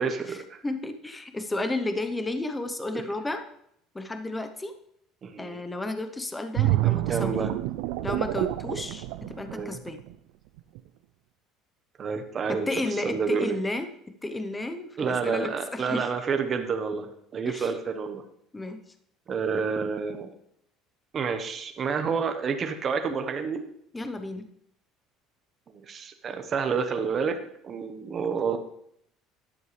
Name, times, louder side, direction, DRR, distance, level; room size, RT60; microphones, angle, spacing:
voice 1, 0.0-0.6 5.2-5.6 6.8-7.5 9.5-9.8 12.0-12.7 13.0-13.6 15.0-17.1 17.3-18.2 19.3-20.3 21.1-23.7 25.7-27.4 27.6-28.6, right 5 dB, 30° right, 6 dB, 1.1 m, -29 dB
voice 2, 0.6-3.5 3.9-4.7 5.4-7.5 8.0-10.0 12.7-13.9 14.2-16.1 17.5-17.7 18.5-18.8 23.9-24.5, left 2 dB, 10° left, 8 dB, 0.9 m, -32 dB
sound 1, 6.5-10.1 10.6-10.8, right 16 dB, 90° right, 0.4 m, -27 dB
12.5 x 11.0 x 3.3 m, 0.72 s
cardioid pair, 150°, 0 cm